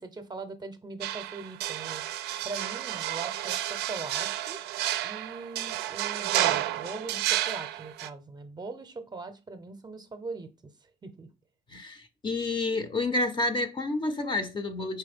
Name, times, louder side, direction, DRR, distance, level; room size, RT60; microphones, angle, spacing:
voice 1, 0.0-2.0 2.4-4.6 5.0-10.5 11.0-11.3, right 3 dB, 25° right, 0.7 m, -41 dB
sound 1, 1.0-8.1, right 13 dB, 80° right, 0.4 m, -31 dB
voice 2, 11.7-15.0, left 2 dB, 30° left, 0.6 m, -29 dB
4.6 x 3.2 x 3.5 m
cardioid pair, 110°, 17 cm